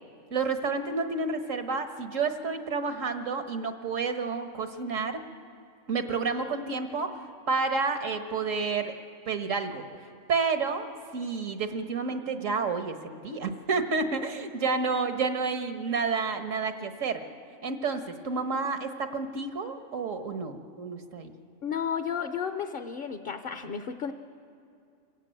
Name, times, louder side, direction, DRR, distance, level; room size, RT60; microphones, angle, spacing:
voice 1, 0.3-5.2 5.9-8.9 9.3-9.9 10.3-17.2 17.6-21.3, right 4 dB, 85° right, 7 dB, 1.6 m, -30 dB
voice 2, 21.6-24.1, left 7 dB, 50° left, 8 dB, 0.8 m, -32 dB
26.0 x 16.0 x 8.9 m, 2.4 s
omnidirectional pair, 1.3 m